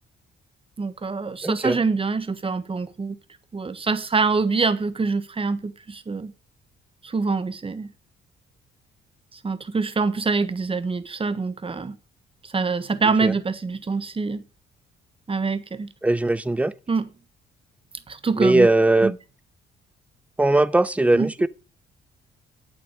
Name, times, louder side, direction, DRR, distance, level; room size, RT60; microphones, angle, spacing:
voice 1, 0.8-3.2 3.5-6.3 7.0-7.9 9.3-12.0 12.4-14.4 15.3-15.9 16.9-17.1 18.1-18.7 19.0-19.1 21.1-21.3, right 4 dB, 25° right, 1.3 m, -25 dB
voice 2, 1.4-1.8 13.2-13.3 16.0-16.7 18.4-19.1 20.4-21.5, right 2 dB, 5° right, 0.6 m, -19 dB
8.5 x 7.6 x 6.5 m
cardioid pair, 90°, 20 cm